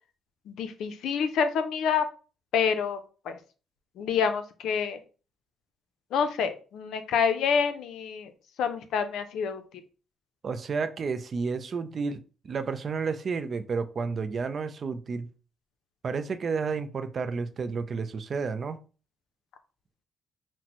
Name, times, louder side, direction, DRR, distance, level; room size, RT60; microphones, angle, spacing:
voice 1, 0.5-2.1 2.5-3.4 4.0-5.0 6.1-8.3 8.6-9.6, left 6 dB, 80° left, 0.5 m, -27 dB
voice 2, 10.4-12.2 12.4-15.3 16.0-18.8, right 5 dB, 45° right, 0.4 m, -31 dB
5.8 x 2.1 x 2.9 m
cardioid pair, 90°, 0 cm